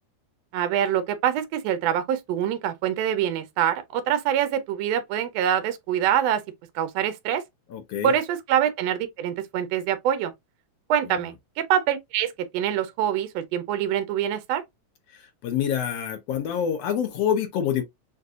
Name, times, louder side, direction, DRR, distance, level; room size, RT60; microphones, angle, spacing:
voice 1, 0.5-6.4 6.8-7.4 8.0-10.3 10.9-14.6, right 10 dB, 70° right, 1.8 m, -25 dB
voice 2, 7.7-8.1 15.4-17.8, left 9 dB, 70° left, 1.8 m, -26 dB
6.6 x 2.6 x 2.4 m
omnidirectional pair, 3.3 m